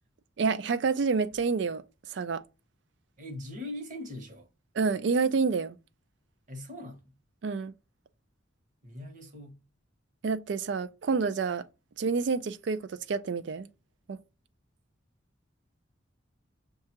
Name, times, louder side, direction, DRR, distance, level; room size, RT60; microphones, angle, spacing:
voice 1, 0.4-1.8 2.1-2.4 4.7-5.8 7.4-7.7 10.2-11.6 12.0-13.7 14.1-14.2, right 5 dB, 65° right, 0.4 m, -28 dB
voice 2, 3.2-4.5 6.5-7.1 8.8-9.6, left 1 dB, 40° right, 1.0 m, -41 dB
6.4 x 2.3 x 2.8 m
head